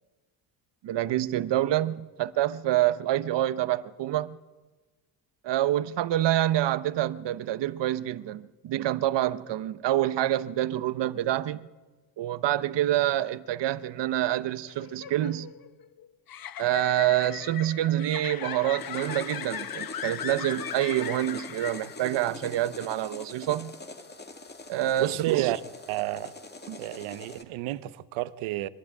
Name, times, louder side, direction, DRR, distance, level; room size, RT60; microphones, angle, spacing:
voice 1, 0.8-4.4 5.4-11.7 12.2-15.5 16.6-23.7 24.7-25.6 26.7-26.8, right 13 dB, 60° right, 1.0 m, -27 dB
sound 1, 14.6-22.3, left 10 dB, 45° left, 1.0 m, -38 dB
sound 2, 18.8-27.4, left 3 dB, 20° left, 2.2 m, -44 dB
voice 2, 25.0-25.6 25.9-26.3 26.8-28.7, right 16 dB, 85° right, 0.9 m, -30 dB
23.0 x 12.0 x 9.7 m
cardioid pair, 100°, 48 cm